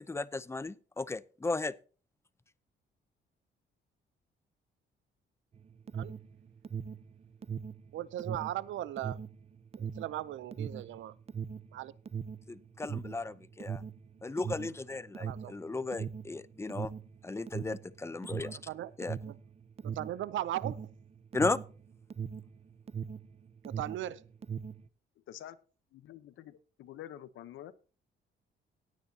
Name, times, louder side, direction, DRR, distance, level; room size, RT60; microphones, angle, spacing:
voice 1, 0.1-1.7 12.5-13.8 14.2-16.9 17.2-18.6 19.0-19.2 21.3-21.6, left 3 dB, 15° left, 0.6 m, -35 dB
Alarm, 5.5-23.3 23.6-24.9, right 7 dB, 30° right, 0.7 m, -39 dB
voice 2, 7.9-9.2 9.8-11.2 11.7-11.9 15.2-15.5 18.4-18.9 19.3-19.4 19.8-20.9 23.6-24.2, right 13 dB, 75° right, 0.6 m, -38 dB
voice 3, 25.9-27.7, left 12 dB, 80° left, 0.9 m, -47 dB
16.5 x 9.7 x 2.8 m
cardioid pair, 90°, 20 cm